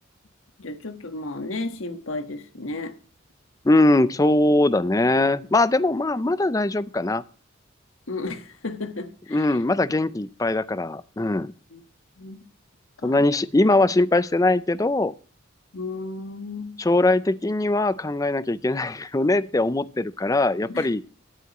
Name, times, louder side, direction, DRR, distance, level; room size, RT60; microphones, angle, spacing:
voice 1, 0.6-3.0 8.1-9.6 11.7-11.8 12.2-12.4 13.0-13.3 15.7-16.8 20.7-20.9, left 2 dB, 85° left, 1.5 m, -33 dB
voice 2, 3.6-7.2 9.3-11.5 13.0-15.1 16.8-21.0, left 2 dB, 15° left, 0.4 m, -21 dB
16.0 x 9.6 x 3.0 m
head